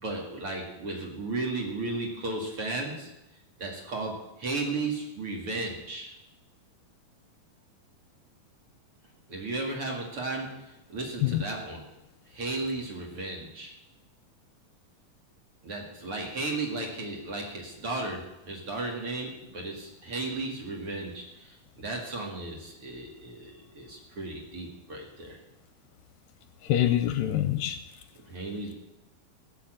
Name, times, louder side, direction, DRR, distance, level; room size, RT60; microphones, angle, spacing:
voice 1, 0.0-3.1 3.6-6.1 9.3-11.8 12.3-13.7 15.6-25.4 28.3-28.7, right 2 dB, 40° right, 0 dB, 2.7 m, -35 dB
voice 2, 26.6-27.8, left 12 dB, 80° left, 10 dB, 2.2 m, -25 dB
17.0 x 6.6 x 7.9 m, 0.92 s
omnidirectional pair, 4.1 m